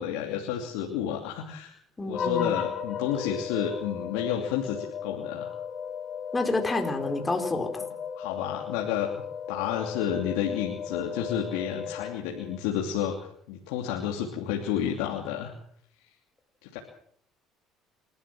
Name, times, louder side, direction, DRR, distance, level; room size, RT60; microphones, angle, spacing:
voice 1, 0.0-1.7 2.0-5.5 7.8-7.9 8.2-15.5 16.6-16.8, left 9 dB, 90° left, 1 dB, 2.8 m, -31 dB
voice 2, 2.0-2.5 6.3-7.7, left 2 dB, 20° left, 5 dB, 4.3 m, -28 dB
sound 1, 2.1-12.6, left 7 dB, 40° left, 2.8 m, -35 dB
27.5 x 12.5 x 7.7 m, 0.66 s
supercardioid pair, 100°, 0 cm